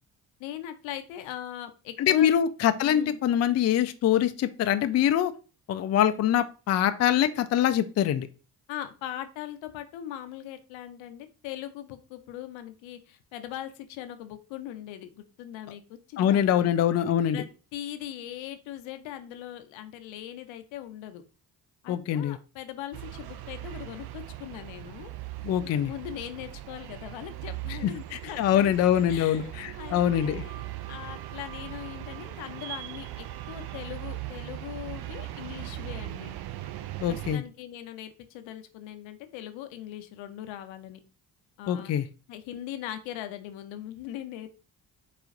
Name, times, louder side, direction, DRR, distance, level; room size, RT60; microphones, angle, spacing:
voice 1, 0.4-2.3 2.8-3.2 8.7-16.7 17.3-17.5 17.7-21.2 21.8-25.1 25.9-28.7 29.1-30.6 30.9-36.3 37.1-41.0 41.6-41.9 42.3-44.5, left 12 dB, 70° left, 9 dB, 0.7 m, -40 dB
voice 2, 2.0-5.3 5.7-8.3 16.2-17.4 21.9-22.4 25.4-25.9 27.8-30.4 37.0-37.4 41.7-42.1, left 10 dB, 35° left, 10 dB, 0.4 m, -24 dB
sound 1, 22.9-37.4, right 15 dB, 55° right, 0.5 m, -39 dB
4.0 x 2.4 x 3.9 m, 0.33 s
hypercardioid pair, 40°, 48 cm